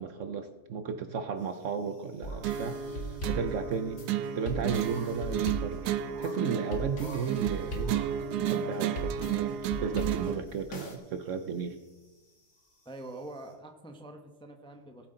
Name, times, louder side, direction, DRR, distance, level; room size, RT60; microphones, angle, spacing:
voice 1, 0.0-4.0 4.3-8.0 8.4-11.8, right 6 dB, 60° right, 9 dB, 0.9 m, -34 dB
sound 1, 1.4-13.5, left 1 dB, 80° left, 4.4 m, -57 dB
sound 2, 2.2-11.0, right 1 dB, 55° left, 2.0 m, -39 dB
sound 3, 2.4-10.4, right 9 dB, 90° right, 1.2 m, -33 dB
voice 2, 7.0-7.3 12.8-15.1, right 2 dB, 5° left, 4 dB, 0.7 m, -45 dB
18.5 x 8.1 x 3.9 m, 1.2 s
omnidirectional pair, 1.7 m